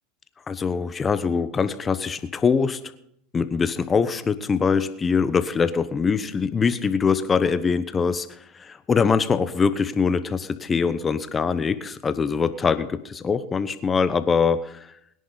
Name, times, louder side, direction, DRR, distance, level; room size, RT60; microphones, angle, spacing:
voice 1, 0.5-2.8 3.3-8.3 8.5-14.9, left 5 dB, 25° left, 13 dB, 1.0 m, -23 dB
21.0 x 10.5 x 4.0 m, 0.72 s
hypercardioid pair, 100°, 0 cm